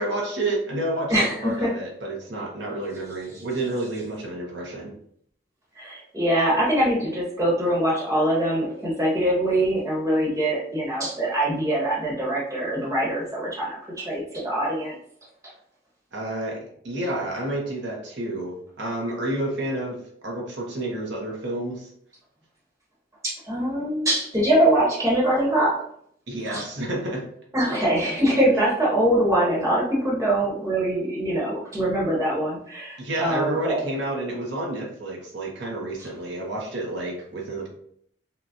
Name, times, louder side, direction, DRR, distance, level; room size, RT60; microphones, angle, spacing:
voice 1, 0.0-4.9 16.1-20.0 20.2-21.9 26.3-27.2 27.8-27.9 28.5-28.6 33.0-37.7, right 1 dB, 65° right, -2 dB, 0.9 m, -30 dB
voice 2, 1.1-1.7 5.7-14.9 23.2-25.7 26.5-26.6 27.5-33.9 36.0-36.1, right 1 dB, 15° right, -6 dB, 1.2 m, -23 dB
5.7 x 2.3 x 2.7 m, 0.67 s
head